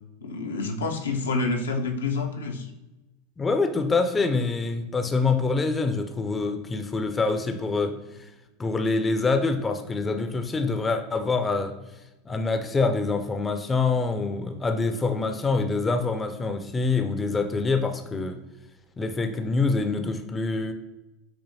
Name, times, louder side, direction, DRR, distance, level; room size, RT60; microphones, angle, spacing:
voice 1, 0.2-2.7, left 3 dB, 75° left, 3 dB, 0.5 m, -28 dB
voice 2, 3.4-8.0 8.6-11.7 12.3-18.4 19.0-20.7, left 3 dB, 20° left, 7 dB, 0.5 m, -25 dB
6.9 x 2.8 x 2.7 m, 1.0 s
figure-of-eight pair, 80°, 0 cm